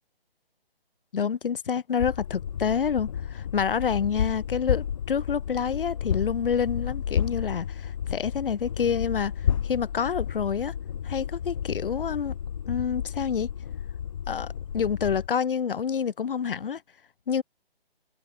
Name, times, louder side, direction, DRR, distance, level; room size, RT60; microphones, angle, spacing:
voice 1, 1.1-9.3 9.6-10.7 11.0-12.3 12.7-13.5 14.3-14.5 14.7-16.8 17.3-17.4, left 7 dB, 60° left, 1.1 m, -28 dB
sound 1, 2.0-15.3, left 8 dB, 35° left, 0.7 m, -32 dB
hypercardioid pair, 155°, 30 cm